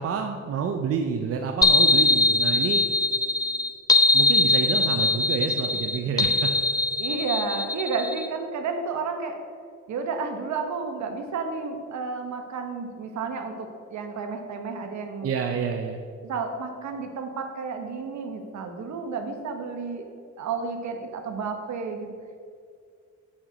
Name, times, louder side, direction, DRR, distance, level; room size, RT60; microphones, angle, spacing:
voice 1, 0.0-2.9 4.1-6.8 15.2-16.0, right 6 dB, 50° right, 4 dB, 0.6 m, -28 dB
sound 1, 1.6-8.3, left 2 dB, 15° left, 0.5 m, -22 dB
voice 2, 7.0-9.4 9.9-15.3 16.2-20.1 20.4-22.1, right 4 dB, 65° right, 5 dB, 1.1 m, -31 dB
8.5 x 4.6 x 5.1 m, 2.2 s
cardioid pair, 90°, 30 cm